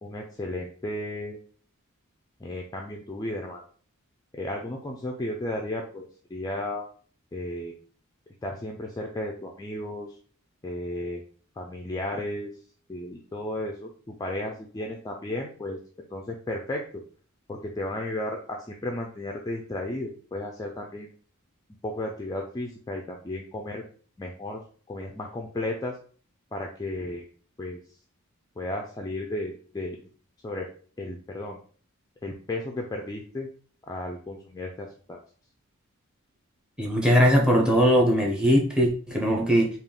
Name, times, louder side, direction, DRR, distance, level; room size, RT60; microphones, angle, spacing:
voice 1, 0.0-1.4 2.4-3.6 4.3-6.9 7.3-7.7 8.4-10.2 10.6-11.2 11.6-12.5 12.9-15.8 16.1-17.0 17.5-21.1 21.8-23.8 24.2-24.6 24.9-26.0 26.5-27.2 27.6-27.8 28.6-30.0 30.4-30.7 31.0-31.6 32.2-33.5 33.9-35.2, left 1 dB, 15° left, 1 dB, 0.3 m, -34 dB
voice 2, 36.8-39.7, equal, 5° right, 0 dB, 0.8 m, -20 dB
3.4 x 2.4 x 3.7 m, 0.43 s
head